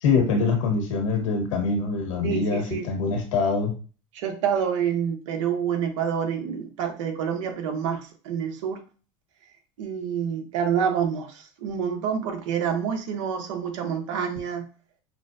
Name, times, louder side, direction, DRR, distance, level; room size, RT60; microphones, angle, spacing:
voice 1, 0.0-3.7, left 4 dB, 90° left, 2 dB, 1.6 m, -24 dB
voice 2, 2.2-2.8 4.1-8.8 9.8-14.6, right 7 dB, 85° right, 4 dB, 1.2 m, -27 dB
5.9 x 2.2 x 2.7 m, 0.36 s
supercardioid pair, 140°, 16 cm